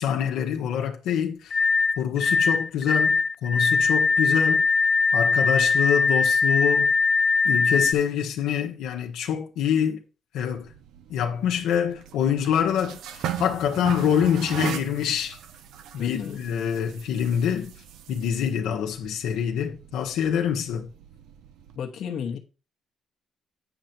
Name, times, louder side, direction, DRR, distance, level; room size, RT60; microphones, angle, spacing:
voice 1, 0.0-1.6 2.0-4.6 5.1-6.9 7.4-10.0 10.3-10.7 11.1-15.4 15.9-17.7 18.1-20.9, left 8 dB, 90° left, 1.2 m, -25 dB
sound 1, 1.5-7.9, left 4 dB, 40° left, 0.5 m, -21 dB
sound 2, 10.5-21.8, right 10 dB, 85° right, 0.7 m, -39 dB
voice 2, 16.0-16.4 21.7-22.4, left 7 dB, 70° left, 1.2 m, -32 dB
9.2 x 5.2 x 4.5 m
cardioid pair, 90°, 0 cm